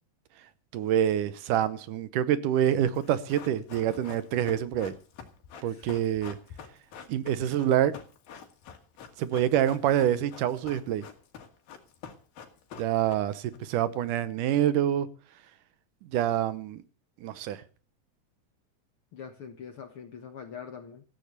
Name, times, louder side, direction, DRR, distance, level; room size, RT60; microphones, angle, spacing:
voice 1, 0.7-4.9 5.6-6.4 7.1-7.9 9.2-11.0 12.8-15.1 16.1-16.8 17.2-17.6, right 10 dB, 75° right, 2.3 m, -26 dB
Run, 2.9-13.6 13.8-13.9, left 7 dB, 90° left, 4.0 m, -46 dB
voice 2, 5.6-6.0 19.1-21.0, left 7 dB, 55° left, 1.6 m, -44 dB
15.5 x 10.0 x 6.6 m
omnidirectional pair, 4.0 m